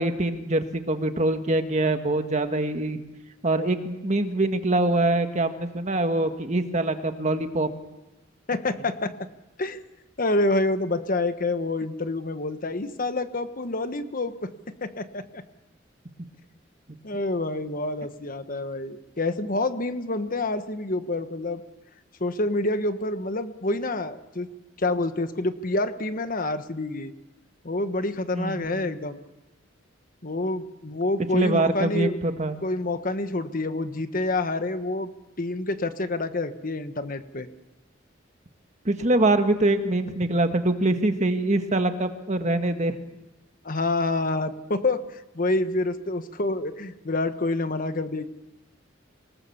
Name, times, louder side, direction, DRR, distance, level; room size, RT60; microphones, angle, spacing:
voice 1, 0.0-3.0 3.4-7.7 28.3-28.9 31.3-32.6 38.8-42.9, right 2 dB, 35° right, 7 dB, 1.6 m, -24 dB
voice 2, 8.5-9.1 9.6-9.8 10.2-14.5 14.8-15.4 17.0-21.6 22.2-24.5 24.8-27.1 27.6-29.2 30.2-32.2 32.6-35.1 35.4-37.5 43.6-48.2, left 2 dB, 45° left, 10 dB, 1.2 m, -27 dB
27.0 x 19.0 x 7.1 m, 1.0 s
head